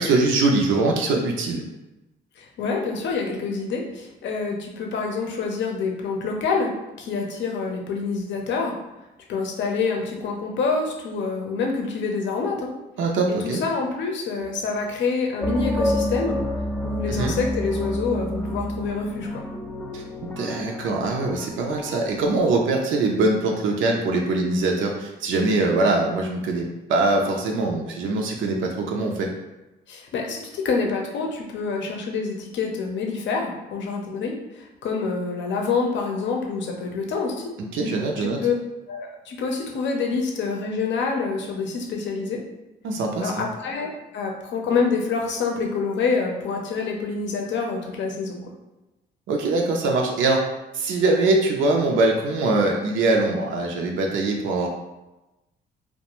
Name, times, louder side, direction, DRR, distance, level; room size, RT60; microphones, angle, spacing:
voice 1, 0.0-1.6 13.0-13.6 17.1-17.3 19.9-29.3 37.6-38.4 42.8-43.4 49.3-50.4 50.7-54.7, right 2 dB, 80° right, 1 dB, 0.5 m, -22 dB
voice 2, 2.4-8.7 9.3-12.7 13.3-16.4 16.8-19.4 29.9-37.5 38.2-38.5 38.9-42.4 43.2-48.4, left 4 dB, 65° left, 1 dB, 0.6 m, -27 dB
sound 1, 15.4-22.8, left 1 dB, 10° left, 0.3 m, -29 dB
2.4 x 2.1 x 2.9 m, 1.0 s
cardioid pair, 90°, 20 cm